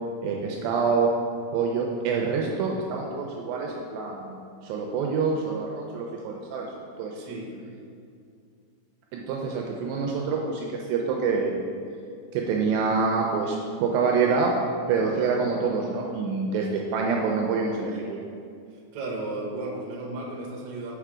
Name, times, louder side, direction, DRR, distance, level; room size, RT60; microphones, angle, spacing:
voice 1, 0.2-1.1 1.5-4.4 4.6-6.7 7.0-7.2 9.1-11.6 12.3-14.5 14.9-18.2, right 5 dB, 80° right, 0 dB, 2.2 m, -26 dB
voice 2, 7.1-7.6 18.9-20.9, right 2 dB, 65° right, -1 dB, 1.9 m, -34 dB
6.6 x 4.6 x 4.9 m, 2.4 s
omnidirectional pair, 4.3 m